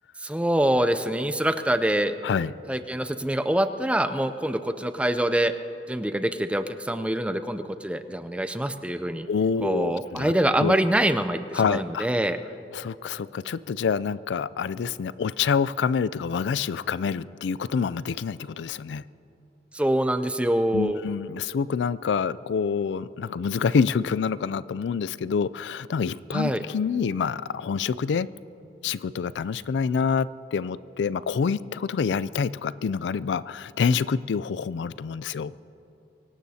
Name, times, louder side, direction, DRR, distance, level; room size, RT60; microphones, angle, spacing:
voice 1, 0.2-2.2 2.7-5.5 5.9-9.3 9.6-12.4 19.7-21.0 26.3-26.6, right 1 dB, 5° right, 10 dB, 0.4 m, -25 dB
voice 2, 9.3-10.3 10.6-10.8 11.5-12.1 12.7-19.0 20.7-28.3 28.8-35.5, left 6 dB, 80° left, 18 dB, 0.4 m, -27 dB
24.0 x 18.0 x 2.8 m, 2.8 s
head